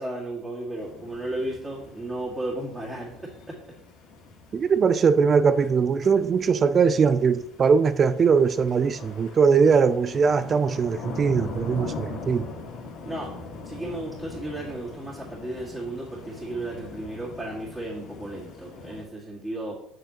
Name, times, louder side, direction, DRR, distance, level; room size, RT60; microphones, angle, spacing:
voice 1, 0.0-3.6 13.0-13.3 13.7-19.8, right 1 dB, 20° right, 2.0 m, -34 dB
sound 1, 0.7-19.0, left 4 dB, 70° left, 1.7 m, -42 dB
voice 2, 4.5-12.5, right 5 dB, 40° right, 0.3 m, -21 dB
7.6 x 6.9 x 3.0 m
supercardioid pair, 75°, 0 cm